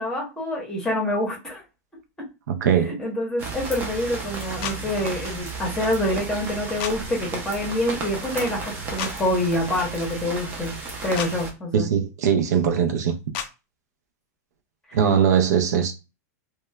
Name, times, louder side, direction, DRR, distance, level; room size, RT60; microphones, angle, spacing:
voice 1, 0.0-1.6 2.2-2.3 3.0-10.7 11.0-11.9 14.9-15.0, left 1 dB, 10° left, 0.8 m, -26 dB
voice 2, 2.5-3.0 11.7-13.2 14.9-15.9, right 7 dB, 75° right, 0.5 m, -20 dB
Under the Awning Light Rain, 3.4-11.5, right 3 dB, 20° right, 0.5 m, -33 dB
sound 1, 4.6-4.8 6.8-6.9 9.0-9.1 11.1-11.3 13.3-13.5, left 9 dB, 35° left, 0.3 m, -30 dB
2.9 x 2.1 x 2.2 m
supercardioid pair, 165°, 9 cm